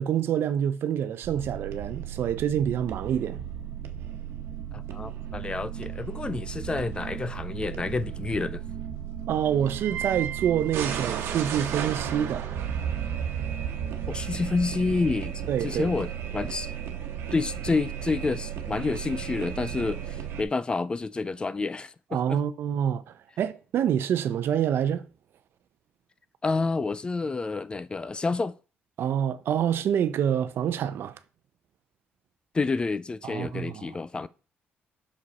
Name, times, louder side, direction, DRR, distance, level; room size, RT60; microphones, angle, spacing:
voice 1, 0.0-3.4 9.3-12.5 15.5-15.9 22.1-25.1 29.0-31.2 33.2-33.9, right 9 dB, 70° right, 0.6 m, -27 dB
sound 1, 1.2-20.4, right 9 dB, 85° right, 1.1 m, -34 dB
voice 2, 4.7-8.6 14.1-16.7 17.3-21.9 22.3-22.4 26.4-28.5 32.5-34.3, left 3 dB, 25° left, 0.3 m, -29 dB
6.2 x 5.1 x 4.1 m
cardioid pair, 115°, 4 cm